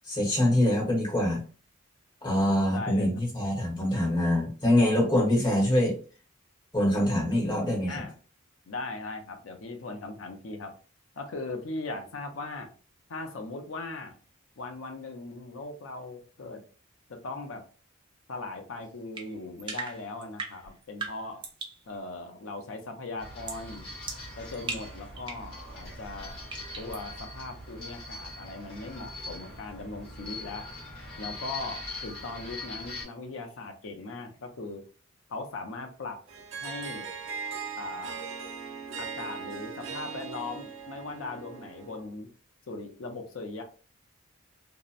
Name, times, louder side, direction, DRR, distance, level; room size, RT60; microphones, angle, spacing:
voice 1, 0.1-1.4 2.2-6.0 6.7-8.0, left 1 dB, 20° left, -2 dB, 0.9 m, -24 dB
voice 2, 2.7-3.2 7.9-8.2 8.7-10.7 11.2-12.7 13.1-14.1 14.6-16.6 17.1-17.6 18.3-21.5 21.9-23.9 24.4-26.4 26.8-30.7 31.2-34.8 35.3-36.2 36.6-37.1 37.8-38.3 39.0-42.3 42.7-43.6, left 3 dB, 75° left, 4 dB, 0.5 m, -39 dB
sound 1, 19.2-21.8 23.5-23.7 24.1-25.5 26.5-27.0, right 4 dB, 25° right, 0.4 m, -39 dB
sound 2, 23.2-33.0, left 2 dB, 45° left, 1.1 m, -42 dB
Harp, 36.3-42.1, right 6 dB, 65° right, 0.6 m, -39 dB
2.7 x 2.0 x 2.4 m, 0.38 s
head